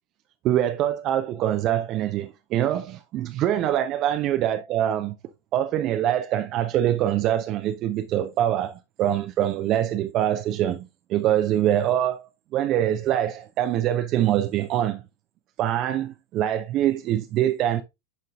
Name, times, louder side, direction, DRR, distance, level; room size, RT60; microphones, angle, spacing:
voice 1, 0.4-5.2 5.5-15.0 15.6-17.8, right 11 dB, 35° right, 0.5 m, -24 dB
9.2 x 5.2 x 2.4 m
figure-of-eight pair, 90°, 0 cm